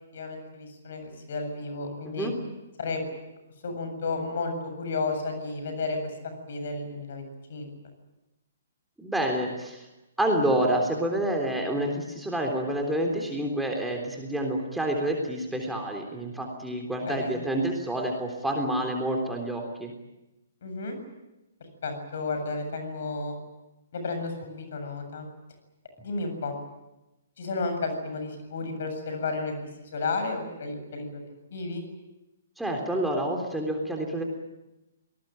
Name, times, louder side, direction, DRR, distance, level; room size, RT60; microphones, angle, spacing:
voice 1, 0.1-2.3 2.8-3.0 3.6-6.0 6.5-7.7 17.1-17.3 20.6-21.0 21.8-23.4 23.9-25.3 26.0-26.5 27.4-29.5 29.8-31.2 31.5-31.8, left 3 dB, 55° left, 7 dB, 7.6 m, -32 dB
voice 2, 9.0-9.9 10.2-19.9 32.6-34.2, right 1 dB, 5° right, 1 dB, 3.6 m, -28 dB
27.5 x 20.0 x 9.0 m, 0.98 s
figure-of-eight pair, 125°, 0 cm